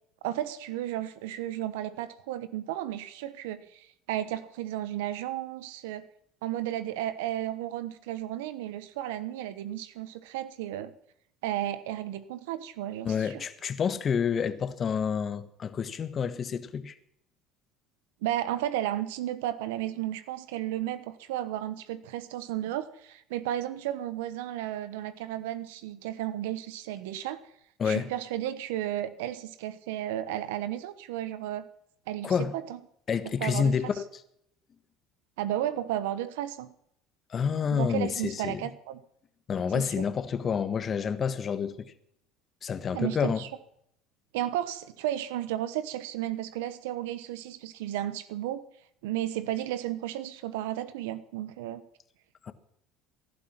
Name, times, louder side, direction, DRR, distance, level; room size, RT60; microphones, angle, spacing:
voice 1, 0.2-6.1 6.4-10.9 11.4-13.4 18.2-27.4 27.8-31.7 32.1-32.8 33.2-33.7 35.4-36.7 37.7-39.0 39.7-40.0 42.9-43.5 44.3-48.6 49.0-51.8, right 12 dB, 85° right, 1.1 m, -33 dB
voice 2, 13.0-16.9 27.8-28.1 32.2-32.5 33.1-34.2 37.3-38.7 39.5-41.9 42.6-43.4 52.4-52.5, left 6 dB, 40° left, 1.5 m, -29 dB
18.0 x 11.5 x 5.9 m
supercardioid pair, 90°, 0 cm